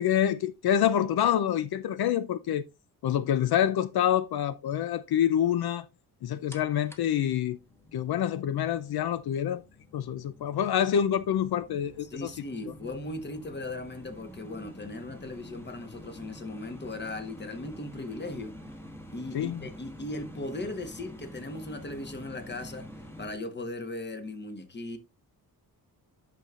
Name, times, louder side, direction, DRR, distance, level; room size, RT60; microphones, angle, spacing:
voice 1, 0.0-2.7 3.0-5.9 6.2-7.6 7.9-9.6 9.9-12.3 19.3-19.6, left 10 dB, 80° left, 0.6 m, -26 dB
sound 1, 6.5-23.3, equal, 5° left, 1.3 m, -48 dB
voice 2, 12.0-18.6 19.1-25.0, left 2 dB, 30° left, 1.2 m, -38 dB
10.0 x 5.9 x 2.5 m
wide cardioid pair, 135°, 37 cm